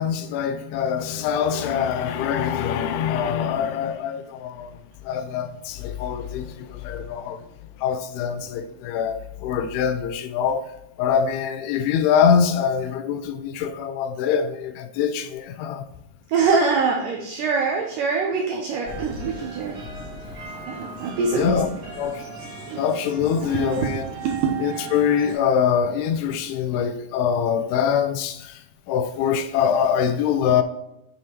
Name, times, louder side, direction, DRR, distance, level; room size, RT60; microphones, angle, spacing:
voice 1, 0.0-4.7 5.1-7.4 7.8-10.6 11.0-15.8 21.4-21.7 22.0-22.2 22.8-24.0 24.6-28.5 28.9-30.6, left 7 dB, 85° left, 2.5 m, -24 dB
voice 2, 16.3-19.8 20.2-20.3 20.7-21.7 22.7-22.9 23.4-24.5, right 4 dB, 80° right, 1.9 m, -24 dB
sound 1, 18.8-25.3, right 3 dB, 35° right, 1.9 m, -37 dB
7.5 x 6.7 x 2.9 m
omnidirectional pair, 4.6 m